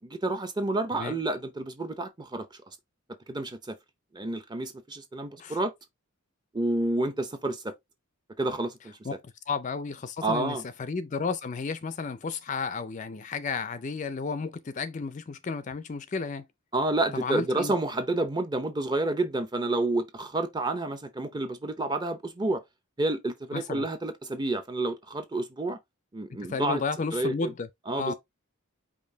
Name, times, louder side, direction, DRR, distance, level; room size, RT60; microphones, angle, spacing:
voice 1, 0.0-2.5 3.3-3.8 4.1-5.7 6.5-7.7 8.4-8.9 10.2-10.6 16.7-22.6 23.0-25.8 26.1-26.8 27.1-27.5 27.9-28.1, right 2 dB, 20° right, 0.7 m, -29 dB
voice 2, 9.0-16.4 17.2-17.7 23.5-23.9 26.5-27.7 28.0-28.1, left 4 dB, 35° left, 0.4 m, -33 dB
5.2 x 2.6 x 3.9 m
head